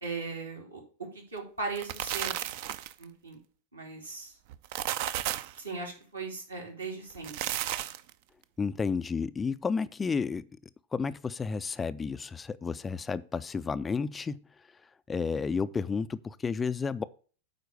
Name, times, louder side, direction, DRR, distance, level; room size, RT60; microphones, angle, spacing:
voice 1, 0.0-2.3 3.0-3.4 3.7-4.3 5.6-7.6, right 4 dB, 80° right, 3.2 m, -38 dB
sound 1, 1.6-3.0 4.5-5.6 7.1-8.1, right 13 dB, 50° right, 0.5 m, -33 dB
voice 2, 8.6-10.4 10.9-14.4 15.1-17.0, left 5 dB, 15° left, 0.3 m, -31 dB
9.2 x 4.1 x 6.6 m
figure-of-eight pair, 90°, 0 cm